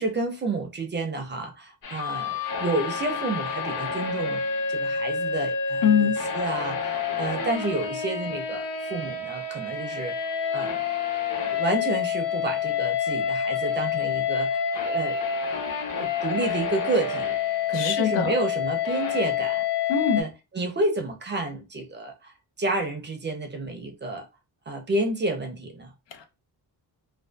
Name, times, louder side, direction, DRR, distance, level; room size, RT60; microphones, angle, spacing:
voice 1, 0.0-4.4 4.7-10.1 10.5-10.8 11.5-14.6 14.8-15.2 16.0-17.4 17.7-19.7 20.2-22.3 22.6-24.3 24.7-25.9, right 2 dB, 25° right, 0.5 m, -30 dB
sound 1, 1.8-20.2, left 7 dB, 55° left, 0.9 m, -28 dB
voice 2, 5.8-6.1 17.7-18.3 19.9-20.2 26.1-26.2, left 7 dB, 90° left, 0.7 m, -23 dB
2.5 x 2.3 x 2.2 m
cardioid pair, 135°, 41 cm